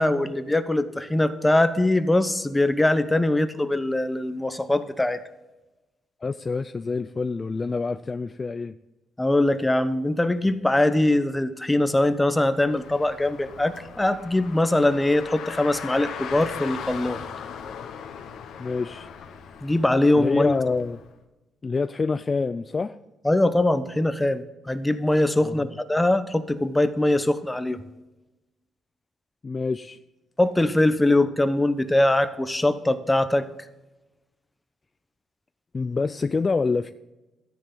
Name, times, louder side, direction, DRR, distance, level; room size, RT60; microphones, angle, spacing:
voice 1, 0.0-5.2 9.2-17.2 19.6-20.5 23.2-27.8 30.4-33.5, left 1 dB, 10° left, 11 dB, 0.9 m, -22 dB
voice 2, 6.2-8.8 18.6-19.1 20.1-21.0 21.6-23.0 25.4-25.6 29.4-30.0 35.7-36.9, left 4 dB, 30° left, 12 dB, 0.4 m, -26 dB
Car, 12.5-21.1, left 7 dB, 75° left, 1.3 m, -39 dB
13.5 x 10.0 x 3.9 m, 1.0 s
cardioid pair, 90°, 0 cm